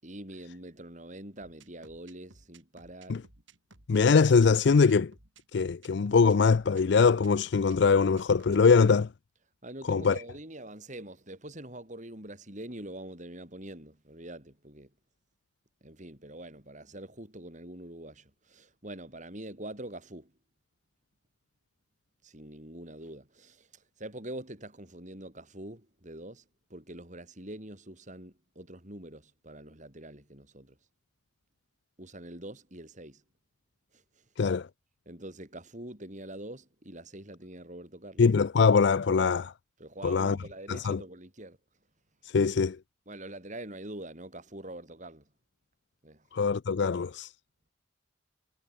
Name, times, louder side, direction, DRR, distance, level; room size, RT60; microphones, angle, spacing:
voice 1, 0.0-3.2 9.6-14.9 15.8-20.3 22.2-26.4 26.7-30.8 32.0-33.2 33.9-34.2 35.1-38.2 39.8-41.6 43.1-45.3 46.0-46.3, right 1 dB, 40° right, 5.8 m, -44 dB
sound 1, 1.4-8.7, right 3 dB, 75° right, 3.9 m, -57 dB
voice 2, 3.9-5.1 5.5-9.1 9.9-10.2 34.4-34.7 38.2-39.5 40.0-40.4 40.7-41.0 42.3-42.8 46.3-47.3, left 5 dB, 60° left, 0.4 m, -22 dB
head